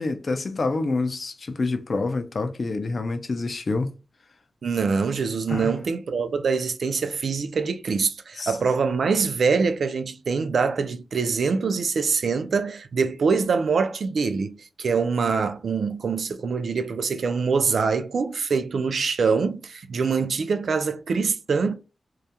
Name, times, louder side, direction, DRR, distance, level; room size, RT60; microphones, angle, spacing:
voice 1, 0.0-3.9 5.5-5.7 8.4-8.5, left 3 dB, 45° left, 0.4 m, -27 dB
voice 2, 4.6-21.7, right 5 dB, 70° right, 0.3 m, -24 dB
2.3 x 2.1 x 2.7 m
wide cardioid pair, 160°, 0 cm